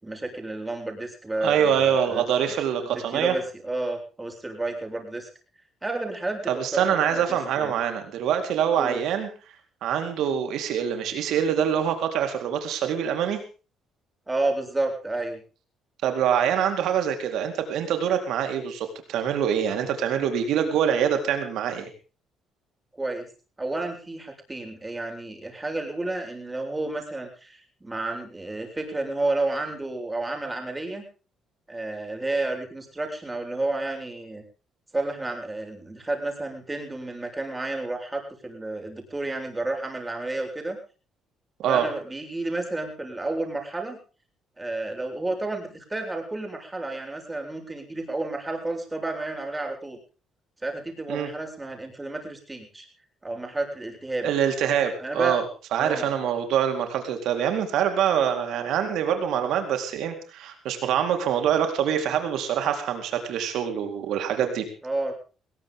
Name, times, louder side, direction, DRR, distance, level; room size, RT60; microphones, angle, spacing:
voice 1, 0.0-2.2 2.8-5.3 5.8-7.7 8.7-9.0 14.3-15.4 23.0-23.3 23.6-31.0 31.7-34.4 34.9-40.8 41.7-44.0 44.6-50.0 50.6-52.9 53.2-54.3 55.0-55.4 55.8-56.1 64.8-65.1, right 2 dB, 15° right, 3 dB, 7.5 m, -31 dB
voice 2, 1.4-3.4 6.5-9.3 9.8-13.4 16.0-21.9 41.6-41.9 51.1-51.3 54.2-55.4 55.7-64.7, right 8 dB, 75° right, 6 dB, 4.2 m, -25 dB
21.0 x 17.5 x 3.8 m, 0.36 s
supercardioid pair, 70°, 0 cm